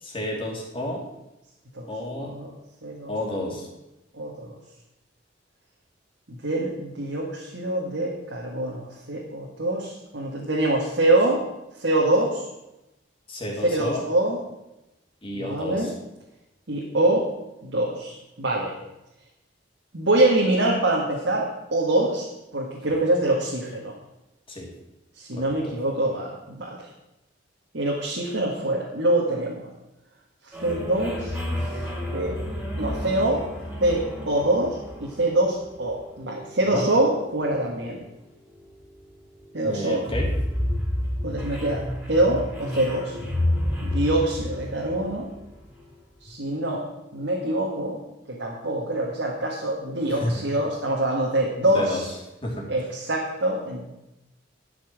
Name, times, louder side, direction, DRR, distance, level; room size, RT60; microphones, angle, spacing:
voice 1, 0.0-1.0 1.9-2.3 3.1-3.7 13.3-14.0 15.2-15.9 24.5-24.7 25.4-25.5 36.6-36.8 39.6-40.3 50.1-50.4 51.6-52.0 52.4-52.6, left 1 dB, 30° left, -2 dB, 2.6 m, -31 dB
voice 2, 2.2-2.5 2.8-3.1 4.2-4.5 6.3-11.4 11.8-12.4 13.7-14.4 15.3-15.9 16.7-17.3 17.6-18.7 19.9-22.3 22.5-23.9 25.2-26.9 27.7-29.7 30.4-31.3 32.1-32.3 32.8-33.5 33.8-38.0 39.5-40.0 41.2-43.1 43.8-45.3 46.2-46.8 47.1-48.0 48.3-52.1 52.7-53.9, right 1 dB, 70° right, -2 dB, 1.8 m, -25 dB
sound 1, 30.5-45.9, left 1 dB, 5° right, 3.6 m, -31 dB
11.5 x 6.0 x 7.5 m, 0.94 s
head